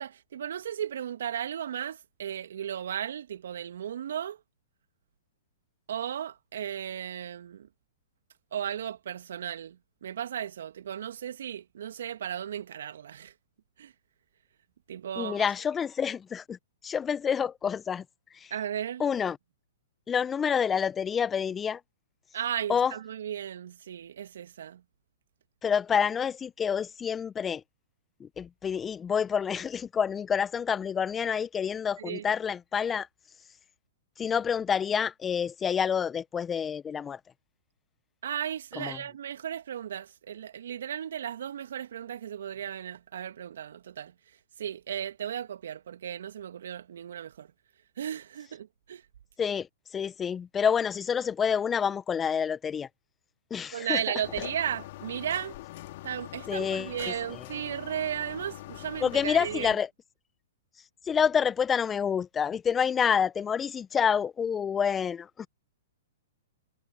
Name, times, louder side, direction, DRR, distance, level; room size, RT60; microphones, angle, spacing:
voice 1, 0.0-4.4 5.9-7.7 8.5-13.3 13.8-13.9 14.9-15.5 18.5-19.0 22.3-24.8 32.0-32.3 38.2-44.1 44.6-47.5 48.0-49.0 53.7-55.6 56.0-59.7, right 9 dB, 65° right, 2.5 m, -35 dB
voice 2, 15.2-16.6 16.8-18.0 18.3-18.5 19.0-19.4 20.1-21.8 22.7-22.9 25.6-27.6 28.2-33.1 34.2-37.2 38.8-39.0 49.4-49.7 49.9-52.9 53.5-54.0 56.5-57.4 59.0-59.9 61.0-65.5, left 7 dB, 20° left, 1.3 m, -28 dB
sound 1, 54.2-59.7, left 17 dB, 50° left, 3.9 m, -43 dB
hypercardioid pair, 115°, 0 cm